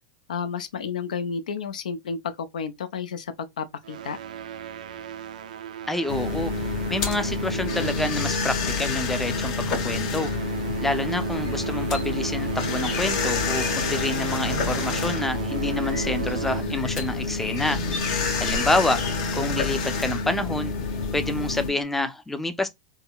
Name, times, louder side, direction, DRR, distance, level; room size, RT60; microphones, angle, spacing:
voice 1, 0.3-4.2, left 6 dB, 85° left, 0.5 m, -31 dB
sound 1, 3.8-8.7 9.0-9.4 9.9-17.0, right 9 dB, 80° right, 0.4 m, -36 dB
voice 2, 5.9-10.3 10.8-17.8 18.4-19.0 19.3-20.7 21.1-22.7, left 2 dB, 5° left, 0.4 m, -28 dB
sound 2, 6.1-21.7, left 4 dB, 60° left, 1.0 m, -28 dB
sound 3, 11.4-14.6 15.7-17.0 17.4-20.4 21.0-21.3 21.8-21.9, left 3 dB, 35° left, 1.3 m, -41 dB
3.6 x 2.1 x 2.2 m
hypercardioid pair, 115°, 4 cm